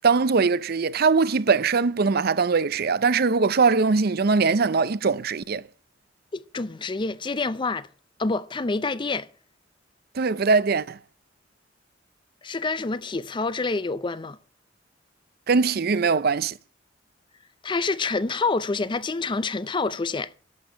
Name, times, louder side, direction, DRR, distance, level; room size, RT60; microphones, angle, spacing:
voice 1, 0.0-5.6 10.1-11.0 15.5-16.5, right 4 dB, 55° right, 0.6 m, -21 dB
voice 2, 6.3-7.9 8.2-9.3 12.4-14.4 17.6-20.3, left 3 dB, 25° left, 0.5 m, -27 dB
12.0 x 7.0 x 8.3 m
head